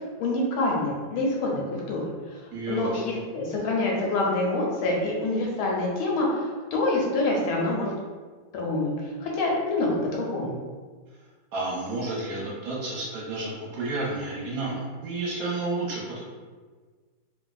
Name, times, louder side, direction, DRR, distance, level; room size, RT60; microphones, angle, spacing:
voice 1, 0.2-2.1 2.7-7.9 8.5-8.9 9.2-10.5, left 2 dB, 90° left, -2 dB, 1.5 m, -26 dB
voice 2, 2.5-3.2 11.5-16.2, right 2 dB, 65° right, -5 dB, 0.9 m, -31 dB
3.3 x 2.6 x 2.3 m, 1.4 s
omnidirectional pair, 2.2 m